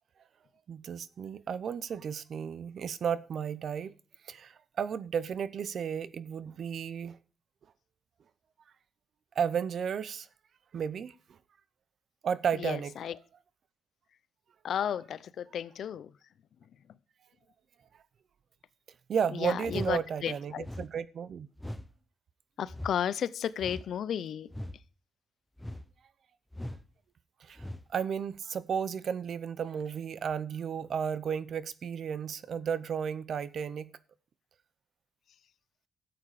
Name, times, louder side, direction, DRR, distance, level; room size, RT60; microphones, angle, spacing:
voice 1, 0.7-3.9 4.2-7.2 9.4-10.3 10.7-11.1 12.2-12.9 19.1-21.5 27.4-33.9, right 7 dB, 60° right, 0.7 m, -33 dB
voice 2, 12.6-13.1 14.6-16.1 19.4-20.6 22.6-24.5, left 9 dB, 75° left, 0.6 m, -33 dB
sound 1, 19.6-20.0 20.6-20.9 21.6-21.9 22.7-23.0 23.6-23.9 24.5-24.8 25.6-25.9 26.5-26.8 27.6-27.9, left 1 dB, 5° left, 0.7 m, -40 dB
13.5 x 7.9 x 4.9 m
wide cardioid pair, 130°, 0 cm